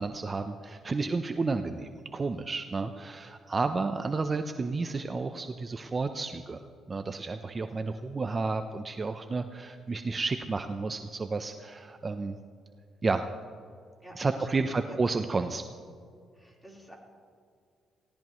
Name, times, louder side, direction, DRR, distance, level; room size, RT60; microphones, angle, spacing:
voice 1, 0.0-6.6 6.9-12.4 13.0-13.2 14.1-15.7, right 3 dB, 30° right, 7 dB, 0.7 m, -31 dB
voice 2, 14.0-15.3 16.3-16.9, right 1 dB, 10° left, -2 dB, 4.1 m, -50 dB
19.0 x 17.0 x 3.1 m, 2.2 s
cardioid pair, 90°, 0 cm